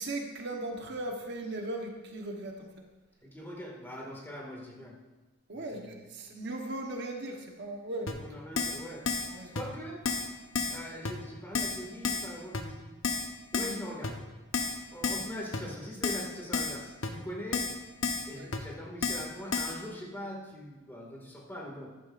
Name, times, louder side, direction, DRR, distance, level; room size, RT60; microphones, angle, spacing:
voice 1, 0.0-2.8 5.5-8.1 9.3-9.5 18.2-18.5, right 2 dB, 55° right, 2 dB, 1.1 m, -38 dB
voice 2, 3.2-5.0 5.5-5.9 8.0-9.1 9.5-10.1 10.7-12.9 13.5-14.2 14.9-17.7 18.3-21.9, equal, 10° left, -2 dB, 2.0 m, -42 dB
Keyboard (musical), 8.1-8.2 8.6-8.8 9.1-9.3 9.6-9.7 10.1-10.3 10.6-10.8 11.1-11.2 11.5-11.8 12.0-12.3 12.5-12.6 13.0-13.3 13.5-13.8 14.0-14.1 14.5-14.8 15.0-15.3 15.5-15.6 16.0-16.3 16.5-16.8 17.0-17.1 17.5-17.8 18.0-18.3 18.5-18.6 19.0-19.3 19.5-19.7, left 4 dB, 65° left, 1.0 m, -31 dB
14.5 x 11.5 x 2.5 m, 1.2 s
head